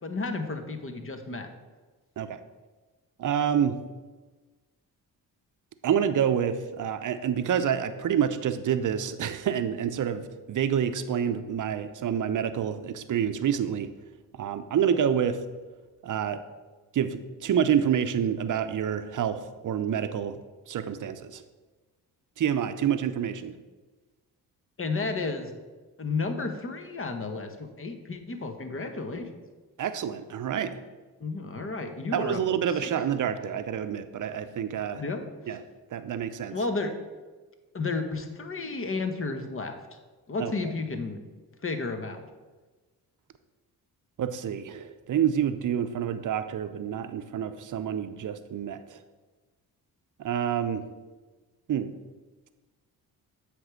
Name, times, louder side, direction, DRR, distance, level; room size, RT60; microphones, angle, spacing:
voice 1, 0.0-1.5 24.8-25.6 26.0-29.3 31.2-32.4 32.8-32.9 35.0-35.6 36.5-36.9 37.7-39.8 40.3-41.2 41.6-42.3, left 3 dB, 35° left, 7 dB, 1.1 m, -32 dB
voice 2, 3.2-3.8 5.8-13.9 14.4-15.4 16.0-16.4 16.9-20.4 20.7-21.4 22.4-23.5 29.8-30.7 32.1-35.0 35.5-35.6 35.9-36.6 40.4-40.5 44.2-49.0 50.2-50.8 51.7-51.9, right 8 dB, 50° right, 10 dB, 0.7 m, -28 dB
7.9 x 3.5 x 6.2 m, 1.3 s
supercardioid pair, 60°, 39 cm